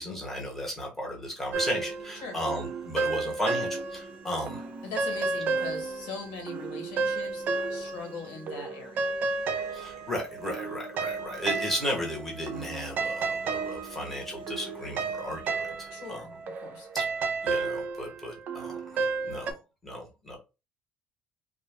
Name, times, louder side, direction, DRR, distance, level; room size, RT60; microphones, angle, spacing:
voice 1, 0.0-4.6 9.7-16.3 16.9-17.1 17.4-20.4, equal, 5° left, -2 dB, 1.1 m, -35 dB
sound 1, 1.5-17.5, right 1 dB, 15° right, 1.0 m, -54 dB
sound 2, 1.5-4.1 4.5-8.2 8.5-19.5, right 4 dB, 50° right, 0.4 m, -32 dB
voice 2, 4.8-7.4 7.7-9.1 15.9-16.3 16.6-16.9, left 4 dB, 85° left, 2 dB, 1.4 m, -40 dB
2.4 x 2.3 x 3.3 m, 0.28 s
cardioid pair, 140°, 4 cm